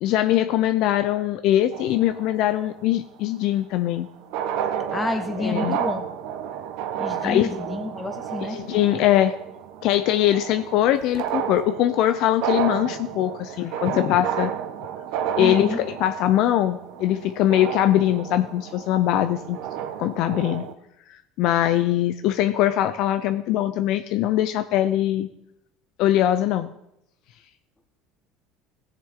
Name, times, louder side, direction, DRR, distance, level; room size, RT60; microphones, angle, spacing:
voice 1, 0.0-4.1 5.4-5.8 7.2-7.5 8.5-9.3 9.8-14.5 15.4-19.6 20.0-20.6 21.4-25.3 26.0-26.7, left 12 dB, 65° left, 10 dB, 0.5 m, -22 dB
sound 1, 1.7-2.8 4.0-4.1 4.2-20.7, right 9 dB, 75° right, 0.9 m, -31 dB
voice 2, 4.9-6.0 7.0-8.6 15.4-15.8, left 2 dB, 20° left, 6 dB, 1.5 m, -29 dB
15.5 x 6.6 x 3.7 m, 0.79 s
supercardioid pair, 90°, 0 cm